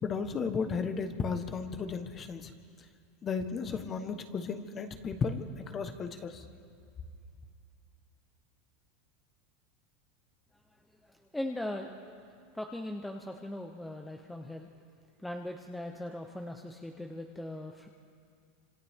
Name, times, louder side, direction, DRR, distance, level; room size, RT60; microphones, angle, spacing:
voice 1, 0.0-2.5 3.2-6.4, left 5 dB, 20° left, 8 dB, 1.2 m, -34 dB
voice 2, 10.7-12.3 12.5-14.7 15.2-17.9, left 1 dB, 5° left, 3 dB, 0.8 m, -40 dB
29.5 x 26.0 x 3.6 m, 2.3 s
supercardioid pair, 155°, 0 cm